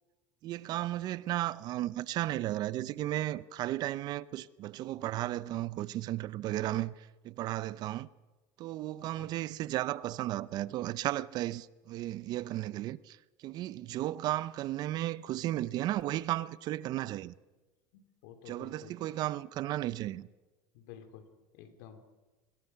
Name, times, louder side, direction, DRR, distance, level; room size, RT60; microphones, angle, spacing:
voice 1, 0.4-8.1 8.6-17.3 18.5-20.3, right 14 dB, 50° right, 0.7 m, -34 dB
voice 2, 9.0-9.3 17.9-18.9 20.7-21.3 21.5-22.0, left 9 dB, 75° left, 3.1 m, -52 dB
24.5 x 21.0 x 5.8 m
supercardioid pair, 125°, 9 cm